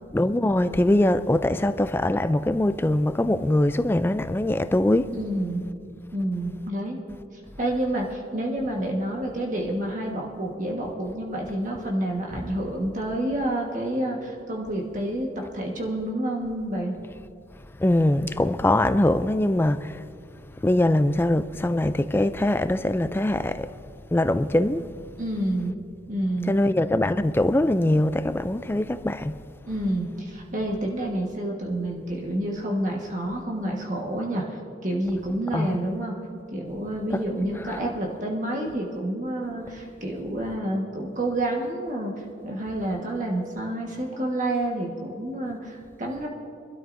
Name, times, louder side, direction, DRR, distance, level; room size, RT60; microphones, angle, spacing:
voice 1, 0.1-5.1 17.8-20.0 20.6-23.7 24.1-24.8 26.5-29.4 35.5-35.8 37.1-37.2, left 1 dB, 10° left, 0.3 m, -22 dB
voice 2, 5.2-5.7 6.1-7.0 7.3-15.3 15.5-16.9 25.2-25.7 26.1-26.6 29.6-36.1 36.5-46.3, right 1 dB, 45° right, 1.4 m, -29 dB
24.5 x 12.5 x 2.6 m
head